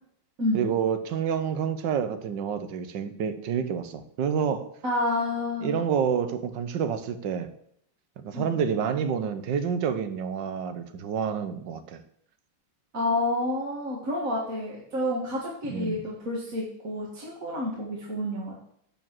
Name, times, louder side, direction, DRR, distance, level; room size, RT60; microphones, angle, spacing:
voice 1, 0.5-4.7 5.6-7.5 8.2-12.0 15.7-16.0, right 7 dB, 65° right, 1.4 m, -28 dB
voice 2, 4.8-5.8 8.3-8.5 12.9-18.5, left 1 dB, 40° right, 2.2 m, -29 dB
11.0 x 4.8 x 7.5 m
omnidirectional pair, 2.4 m